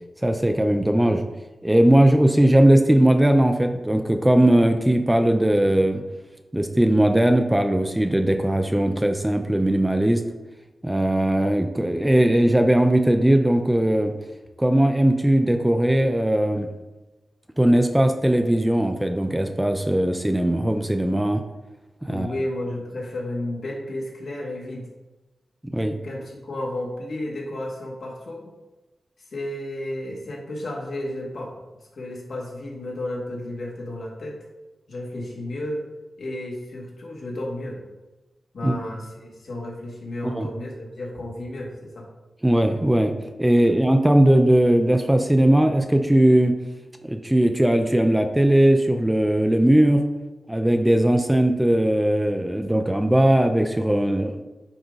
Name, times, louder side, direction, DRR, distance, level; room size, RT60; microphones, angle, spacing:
voice 1, 0.2-1.3 1.6-6.0 6.5-10.2 10.8-14.1 14.6-16.7 17.6-21.4 22.0-22.3 25.7-26.0 38.6-38.7 40.2-40.5 42.4-43.1 43.4-46.6 47.0-50.0 50.5-54.4, right 1 dB, 10° right, 6 dB, 0.5 m, -19 dB
voice 2, 22.1-24.9 26.0-28.5 29.3-34.4 34.9-35.9 36.2-37.8 38.5-42.1, left 1 dB, 70° left, -2 dB, 1.9 m, -32 dB
9.5 x 3.8 x 4.0 m, 1.1 s
wide cardioid pair, 135°, 0 cm